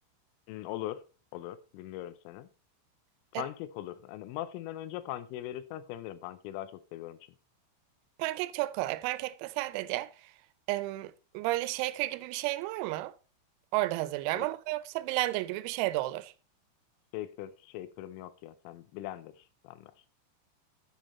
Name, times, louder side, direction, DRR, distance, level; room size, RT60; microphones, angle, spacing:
voice 1, 0.5-1.0 1.3-2.5 3.3-7.2 14.3-14.5 17.1-19.9, left 13 dB, 85° left, 3.1 m, -40 dB
voice 2, 8.2-10.3 10.7-13.1 13.7-16.3, right 17 dB, 90° right, 3.3 m, -32 dB
8.3 x 6.4 x 4.1 m
omnidirectional pair, 5.9 m